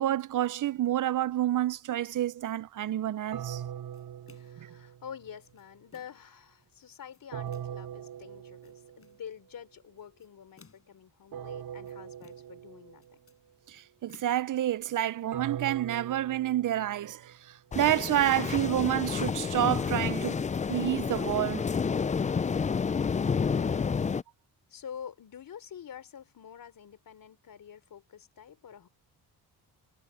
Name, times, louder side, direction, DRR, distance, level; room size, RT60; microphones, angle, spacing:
voice 1, 0.0-3.6 4.6-4.7 13.7-17.3 17.7-20.4 20.7-21.6, right 12 dB, 55° right, 0.7 m, -29 dB
sound 1, 3.3-5.4 7.3-9.2 11.3-13.2 15.3-17.5, right 9 dB, 70° right, 4.0 m, -41 dB
sound 2, 3.9-4.7 5.3-6.3 6.9-7.8 8.4-9.3 10.0-11.0 11.6-12.6 12.9-14.9, left 5 dB, 35° left, 6.8 m, -60 dB
voice 2, 4.3-13.2 23.1-23.9 24.7-28.9, left 8 dB, 60° left, 3.9 m, -47 dB
sound 3, 17.7-24.2, left 6 dB, 20° left, 0.4 m, -30 dB
cardioid pair, 90°, 38 cm